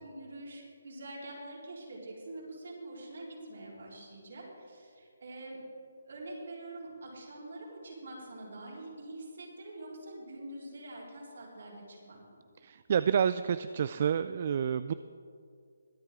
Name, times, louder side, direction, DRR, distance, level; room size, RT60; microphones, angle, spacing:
voice 1, 0.0-5.6 6.0-12.4, right 1 dB, 65° right, -3 dB, 3.9 m, -45 dB
voice 2, 12.6-14.9, right 8 dB, 45° right, 13 dB, 0.3 m, -29 dB
22.5 x 8.6 x 3.7 m, 2.3 s
figure-of-eight pair, 155°, 0 cm